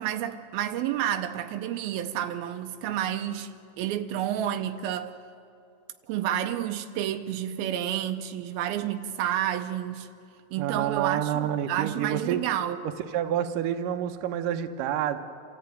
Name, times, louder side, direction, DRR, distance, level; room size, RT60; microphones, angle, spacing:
voice 1, 0.0-5.1 6.1-10.1 10.5-12.8, right 11 dB, 90° right, 2.6 m, -30 dB
voice 2, 10.6-12.4 13.1-15.2, right 10 dB, 70° right, 2.4 m, -28 dB
28.0 x 14.0 x 9.3 m
omnidirectional pair, 4.3 m